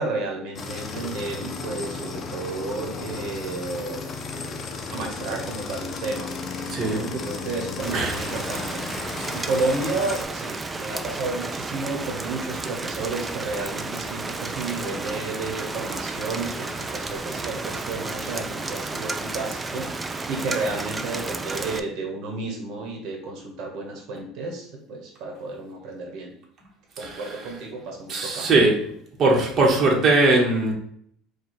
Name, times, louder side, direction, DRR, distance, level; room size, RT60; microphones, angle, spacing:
voice 1, 0.0-4.1 4.9-6.3 6.8-26.3 27.0-28.5, right 3 dB, 60° right, 1 dB, 1.1 m, -32 dB
sound 1, 0.5-10.2, left 4 dB, 30° left, 0.6 m, -34 dB
voice 2, 6.7-7.0 7.9-8.2 9.2-9.3 27.0-27.3 28.1-28.7 29.2-30.7, right 2 dB, 35° right, -2 dB, 1.1 m, -20 dB
Rain, 7.8-21.8, right 3 dB, 15° right, 0.3 m, -32 dB
4.8 x 2.3 x 4.3 m, 0.66 s
cardioid pair, 125°, 0 cm